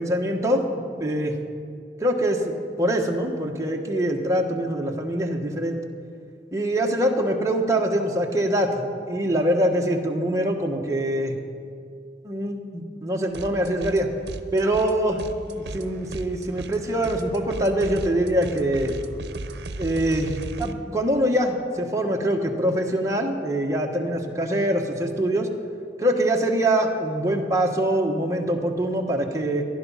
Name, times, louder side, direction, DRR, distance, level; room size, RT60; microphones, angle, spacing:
voice 1, 0.0-1.4 2.0-5.8 6.5-11.4 12.2-14.1 14.5-18.9 19.8-25.5 26.0-29.6, right 1 dB, 20° right, 1 dB, 1.4 m, -24 dB
sound 1, 13.3-14.0 14.3-20.7, right 2 dB, 70° right, 0.8 m, -36 dB
19.0 x 11.5 x 5.7 m, 2.3 s
head